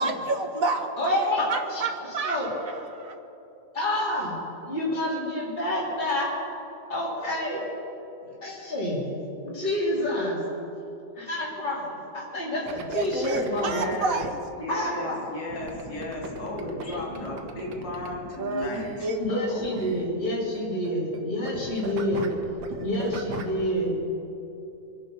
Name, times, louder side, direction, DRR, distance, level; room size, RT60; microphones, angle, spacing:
voice 1, 0.0-0.9 1.5-3.1 12.9-14.4 18.4-19.2, right 3 dB, 50° right, 4 dB, 1.6 m, -29 dB
voice 2, 1.0-2.5 3.7-6.3 6.9-7.6 8.4-9.1 9.4-10.4 11.2-13.8 14.7-15.2 16.8-17.2 19.2-22.3 22.8-24.0, left 1 dB, 30° left, -7 dB, 3.8 m, -28 dB
sound 1, 12.7-14.3 15.5-21.2 21.4-23.6, right 3 dB, 65° right, 1.8 m, -38 dB
voice 3, 13.6-14.2 14.6-19.6, left 2 dB, 90° left, -3 dB, 3.1 m, -35 dB
24.0 x 10.5 x 5.5 m, 2.8 s
omnidirectional pair, 1.9 m